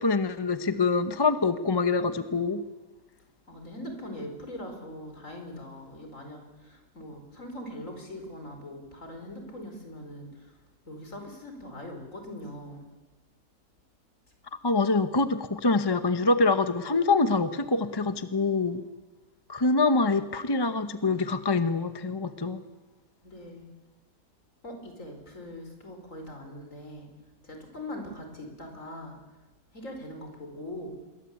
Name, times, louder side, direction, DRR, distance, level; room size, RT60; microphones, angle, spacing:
voice 1, 0.0-2.6 14.6-18.8 19.5-22.6, left 3 dB, 20° left, 11 dB, 0.8 m, -25 dB
voice 2, 3.5-10.6 10.9-12.9 23.2-23.7 24.6-27.1 27.4-29.2 29.7-31.0, left 1 dB, 55° left, 4 dB, 5.2 m, -41 dB
27.0 x 22.0 x 8.4 m, 1.2 s
omnidirectional pair, 1.7 m